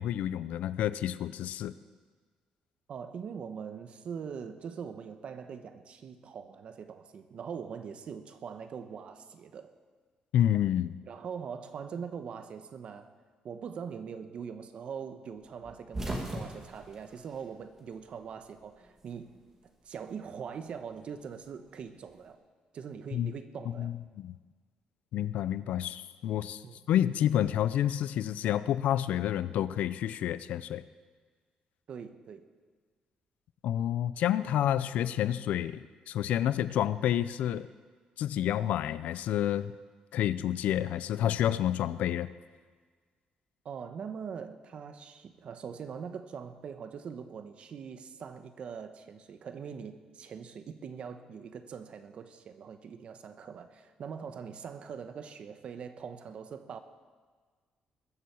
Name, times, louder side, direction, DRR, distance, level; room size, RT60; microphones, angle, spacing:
voice 1, 0.0-1.7 10.3-11.0 23.1-23.3 23.8-24.4 25.1-30.8 33.6-37.7 38.2-39.7 40.1-42.3, left 11 dB, 75° left, 15 dB, 0.6 m, -29 dB
voice 2, 2.9-9.7 11.1-13.1 13.4-19.3 19.8-22.4 22.7-24.0 26.6-26.8 31.9-32.4 43.6-56.8, right 6 dB, 50° right, 9 dB, 1.1 m, -42 dB
sound 1, 15.6-18.2 18.4-19.5 20.7-22.2, right 1 dB, 20° right, 2.3 m, -40 dB
21.5 x 7.7 x 7.1 m, 1.5 s
cardioid pair, 140°, 2 cm